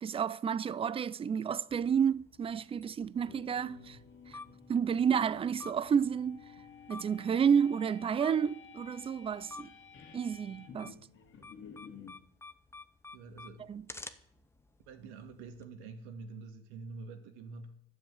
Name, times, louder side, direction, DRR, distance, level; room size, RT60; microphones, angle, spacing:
voice 1, 0.0-4.0 4.3-4.4 4.7-6.4 6.9-9.7 10.1-11.0 13.7-13.8, right 7 dB, 15° right, 0.4 m, -30 dB
sound 1, 1.7-15.6, left 3 dB, 10° left, 0.8 m, -53 dB
sound 2, 3.1-12.2, left 6 dB, 35° left, 2.1 m, -53 dB
voice 2, 3.6-4.0 4.5-4.6 13.1-13.7 14.9-17.8, right 4 dB, 75° right, 2.3 m, -47 dB
11.5 x 7.8 x 8.4 m
supercardioid pair, 110°, 33 cm